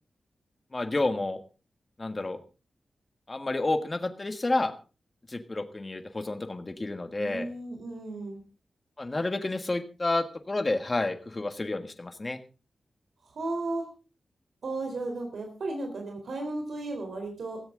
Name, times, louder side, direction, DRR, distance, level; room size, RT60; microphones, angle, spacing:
voice 1, 0.7-1.4 2.0-2.4 3.3-4.7 5.3-7.5 9.0-12.4, left 2 dB, 25° left, 8 dB, 1.5 m, -30 dB
voice 2, 7.1-8.4 13.2-13.9 14.6-17.6, right 2 dB, 80° right, 3 dB, 3.8 m, -34 dB
16.5 x 15.0 x 3.8 m, 0.33 s
wide cardioid pair, 135°, 0 cm